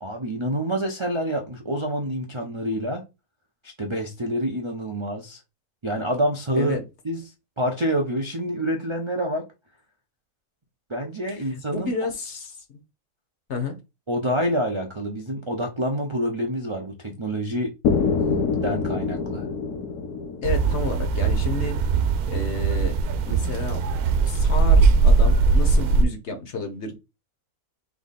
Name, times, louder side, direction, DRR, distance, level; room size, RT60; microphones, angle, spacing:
voice 1, 0.0-3.0 3.8-5.4 5.8-6.8 7.0-7.2 7.6-9.4 10.9-11.9 14.1-17.7 18.6-19.5, equal, 40° right, 0.4 m, -27 dB
voice 2, 6.5-6.8 11.3-12.8 13.5-13.8 20.4-21.8 22.3-23.0 23.3-23.8 24.3-26.9, left 3 dB, 55° left, 1.0 m, -31 dB
sound 1, 17.8-21.7, left 5 dB, 85° left, 1.3 m, -26 dB
sound 2, 20.4-26.0, right 4 dB, 85° right, 1.1 m, -20 dB
3.6 x 3.6 x 4.0 m
omnidirectional pair, 1.6 m